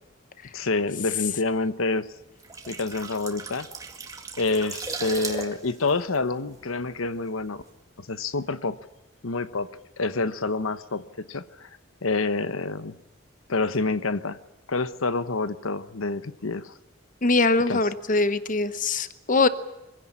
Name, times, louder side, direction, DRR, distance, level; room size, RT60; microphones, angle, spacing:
voice 1, 0.5-2.1 2.7-3.7 4.4-7.6 8.0-8.8 9.2-9.7 10.0-11.7 12.0-13.0 13.5-14.4 14.7-16.7 17.7-17.8, left 3 dB, 80° left, 13 dB, 1.0 m, -27 dB
sound 1, 2.3-7.1 7.4-7.6, right 4 dB, 15° right, 2.0 m, -37 dB
voice 2, 17.2-19.5, left 3 dB, 40° left, 13 dB, 0.9 m, -22 dB
23.5 x 16.5 x 9.9 m, 0.96 s
head